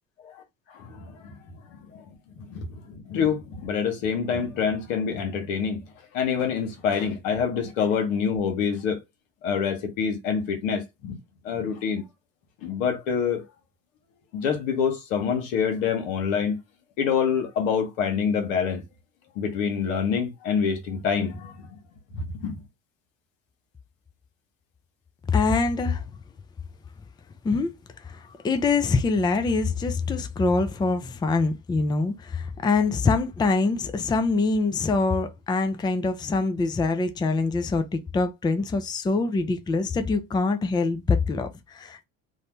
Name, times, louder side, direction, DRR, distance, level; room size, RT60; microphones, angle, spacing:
voice 1, 0.7-1.3 1.9-2.0 2.5-5.8 6.1-9.0 9.4-11.2 11.4-12.0 12.6-13.4 14.3-16.6 17.0-18.8 19.4-21.7 22.1-22.6, left 6 dB, 80° left, 0.9 m, -26 dB
voice 2, 25.3-26.0 27.4-27.7 28.0-42.0, left 3 dB, 10° left, 0.4 m, -24 dB
2.7 x 2.1 x 2.9 m
hypercardioid pair, 70°, 38 cm